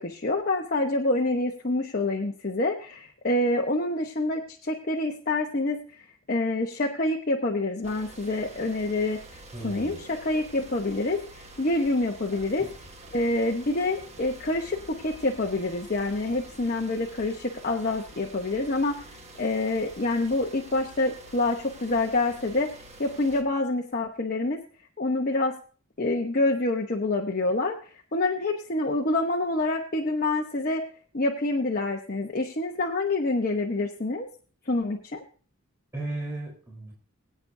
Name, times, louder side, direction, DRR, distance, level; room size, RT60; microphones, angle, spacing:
voice 1, 0.0-5.8 6.3-9.2 9.6-11.2 11.6-12.7 13.1-19.0 19.4-22.7 23.0-24.6 25.0-25.6 26.0-27.8 28.1-30.8 31.1-34.3 34.7-35.2, left 2 dB, 40° left, 0 dB, 1.0 m, -27 dB
sound 1, 7.8-23.4, right 1 dB, 30° right, 1.3 m, -47 dB
voice 2, 9.5-10.0 12.6-12.7 35.9-36.9, right 2 dB, 15° right, -3 dB, 3.9 m, -35 dB
22.0 x 8.6 x 2.7 m, 0.40 s
head